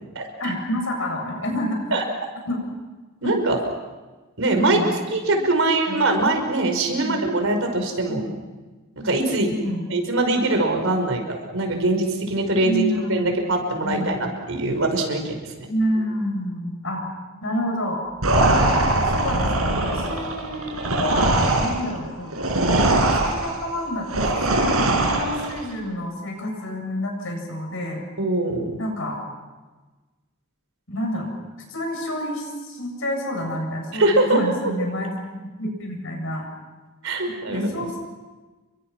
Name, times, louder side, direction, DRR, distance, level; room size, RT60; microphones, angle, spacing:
voice 1, 0.4-1.9 2.5-2.6 3.2-3.3 4.6-4.9 5.9-6.0 7.0-7.2 8.1-8.3 9.5-10.0 10.9-11.1 12.6-13.4 13.8-14.1 15.6-17.0 17.4-18.0 19.0-22.3 22.8-28.0 28.8-29.2 30.9-31.3 31.7-35.1 35.6-36.4 37.5-38.0, equal, 65° left, 2 dB, 7.8 m, -28 dB
voice 2, 3.2-3.6 4.4-4.8 5.1-8.2 9.0-9.5 9.9-12.8 13.1-15.7 18.4-18.5 28.2-28.8 33.9-34.4 37.0-37.9, right 2 dB, 65° right, 4 dB, 5.3 m, -22 dB
sound 1, 18.2-25.6, right 2 dB, 90° right, 4.7 m, -21 dB
29.5 x 24.0 x 6.1 m, 1.2 s
head